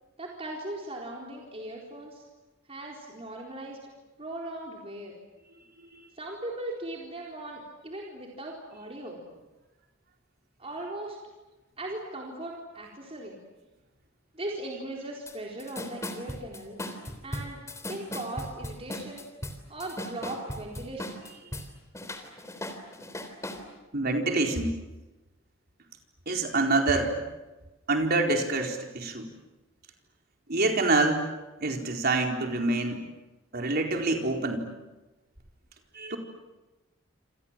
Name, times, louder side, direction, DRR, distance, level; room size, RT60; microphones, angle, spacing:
voice 1, 0.2-2.2 2.7-3.8 4.2-5.2 6.1-9.2 10.6-11.2 11.8-13.4 14.3-16.8 17.2-17.6 17.9-19.3 19.7-21.2, right 1 dB, 30° right, -1 dB, 4.2 m, -38 dB
voice 2, 5.8-6.1 21.5-21.6 23.9-24.8 26.3-27.2 27.9-29.3 30.5-31.3 31.6-33.1 33.5-34.7 35.9-36.2, right 2 dB, 50° right, 2 dB, 4.3 m, -26 dB
sound 1, 15.3-15.4 15.6-21.7 21.9-23.6, left 1 dB, 15° left, 3.5 m, -37 dB
28.0 x 27.5 x 7.6 m, 1.1 s
head